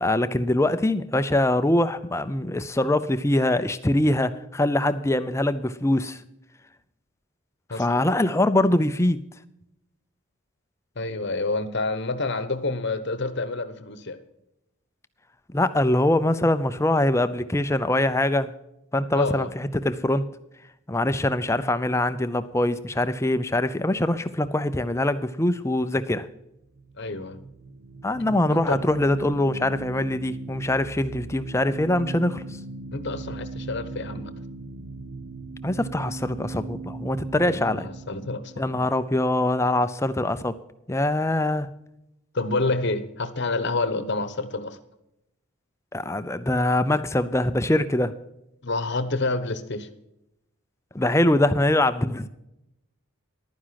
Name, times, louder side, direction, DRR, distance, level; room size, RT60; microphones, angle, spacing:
voice 1, 0.0-6.2 7.7-9.2 15.5-18.5 18.9-20.3 20.9-26.3 28.0-32.4 35.6-37.9 38.6-40.5 40.9-41.7 45.9-48.1 50.9-52.3, left 1 dB, 15° left, 12 dB, 0.5 m, -23 dB
voice 2, 7.7-8.0 11.0-14.2 19.1-19.5 27.0-27.4 28.3-28.8 32.9-34.3 37.4-38.8 42.3-44.8 48.6-49.9, left 3 dB, 50° left, 12 dB, 1.0 m, -28 dB
sound 1, 26.6-39.9, right 3 dB, 45° right, 0.6 m, -39 dB
11.5 x 9.8 x 5.8 m, 0.85 s
head